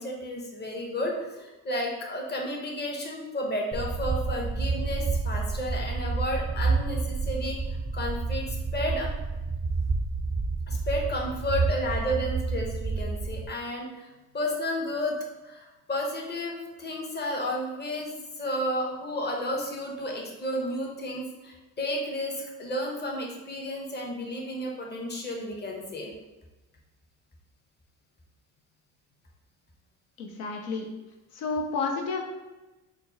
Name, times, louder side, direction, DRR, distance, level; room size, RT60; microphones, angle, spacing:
voice 1, 0.0-7.6 7.9-9.1 10.7-15.2 15.4-26.1, equal, 25° left, 0 dB, 1.0 m, -32 dB
sound 1, 3.7-13.5, right 4 dB, 10° right, 0.3 m, -29 dB
voice 2, 30.2-30.9 31.3-32.2, left 4 dB, 75° left, 1 dB, 0.7 m, -30 dB
4.3 x 2.0 x 3.9 m, 1.1 s
supercardioid pair, 80°, 38 cm